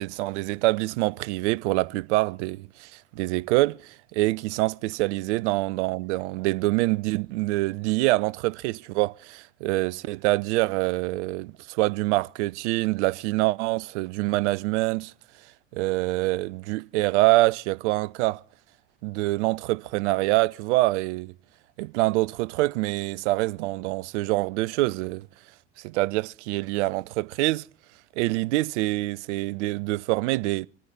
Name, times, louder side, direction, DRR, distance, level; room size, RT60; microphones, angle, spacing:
voice 1, 0.0-15.1 15.7-18.4 19.0-21.3 21.8-25.3 25.8-27.6 28.2-30.7, right 20 dB, 70° right, 0.6 m, -25 dB
26.0 x 9.5 x 4.2 m
hypercardioid pair, 70°, 37 cm